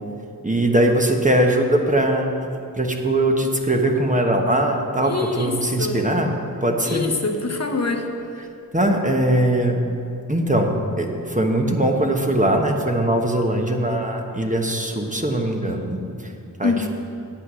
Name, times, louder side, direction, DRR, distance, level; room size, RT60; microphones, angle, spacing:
voice 1, 0.4-6.3 6.6-7.0 8.7-9.9 10.3-16.3 16.6-16.9, right 1 dB, 20° right, 2 dB, 1.2 m, -21 dB
voice 2, 5.0-6.1 6.8-8.0 16.6-16.9, left 3 dB, 45° left, 3 dB, 1.0 m, -25 dB
8.9 x 8.2 x 6.2 m, 2.7 s
cardioid pair, 55°, 36 cm